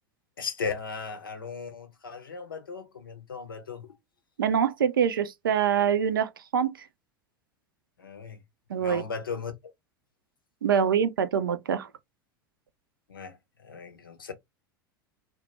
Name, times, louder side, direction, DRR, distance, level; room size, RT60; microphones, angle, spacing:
voice 1, 0.4-3.9 8.0-8.4 8.8-9.5 13.1-14.3, left 5 dB, 75° left, 0.6 m, -37 dB
voice 2, 4.4-6.9 8.7-9.0 10.6-11.9, right 8 dB, 70° right, 0.4 m, -25 dB
2.2 x 2.1 x 2.8 m
figure-of-eight pair, 80°, 12 cm